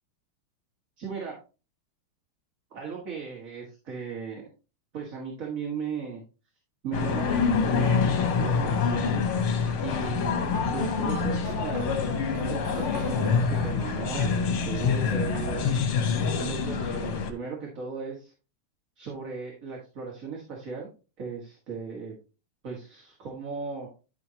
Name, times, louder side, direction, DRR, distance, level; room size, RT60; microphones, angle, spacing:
voice 1, 1.0-1.4 2.7-4.4 4.9-6.2 6.8-10.3 10.7-11.9 12.3-15.8 16.4-18.3 19.0-20.9 21.2-22.1 22.6-23.9, right 5 dB, 40° right, -1 dB, 2.0 m, -37 dB
sound 1, 6.9-17.3, left 5 dB, 80° left, 2.0 m, -26 dB
sound 2, 10.4-15.9, right 7 dB, 65° right, 0.9 m, -40 dB
10.5 x 6.4 x 2.8 m, 0.32 s
omnidirectional pair, 2.3 m